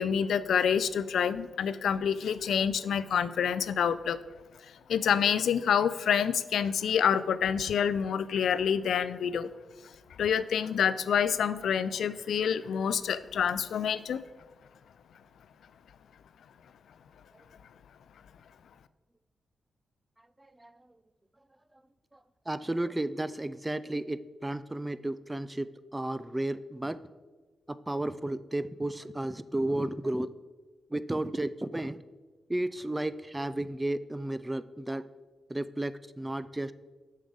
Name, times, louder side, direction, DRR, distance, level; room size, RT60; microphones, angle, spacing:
voice 1, 0.0-4.2 4.9-9.5 10.2-14.2, left 8 dB, 80° left, 14 dB, 0.4 m, -27 dB
voice 2, 20.4-20.8 22.1-22.2 22.5-27.0 27.7-30.3 30.9-32.0 32.5-35.0 35.5-36.7, right 1 dB, 15° right, 15 dB, 0.4 m, -33 dB
7.0 x 6.5 x 5.4 m, 1.3 s
cardioid pair, 75°, 0 cm